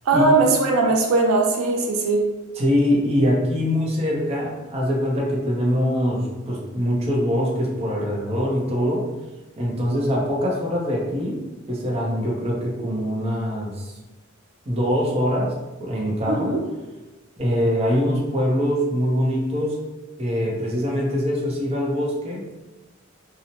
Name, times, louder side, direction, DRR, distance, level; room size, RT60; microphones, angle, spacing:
voice 1, 0.1-2.3 16.3-16.6, right 3 dB, 85° right, 1 dB, 0.4 m, -19 dB
voice 2, 2.6-9.1 9.6-11.4 11.7-13.9 14.7-15.5 15.8-16.6 17.4-19.8 20.2-22.6, equal, 30° right, -3 dB, 0.5 m, -23 dB
2.7 x 2.0 x 2.9 m, 1.1 s
head